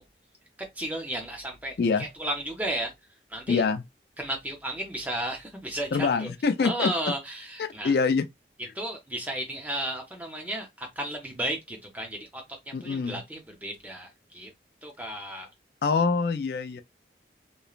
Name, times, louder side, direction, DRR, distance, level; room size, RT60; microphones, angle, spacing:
voice 1, 0.8-2.9 3.3-3.6 4.2-6.3 6.6-7.9 8.7-14.5 14.8-15.5, right 1 dB, 10° right, 0.6 m, -34 dB
voice 2, 3.5-3.8 5.9-6.9 7.6-8.3 12.7-13.2 15.8-16.8, left 4 dB, 60° left, 0.3 m, -25 dB
3.0 x 2.0 x 2.3 m
head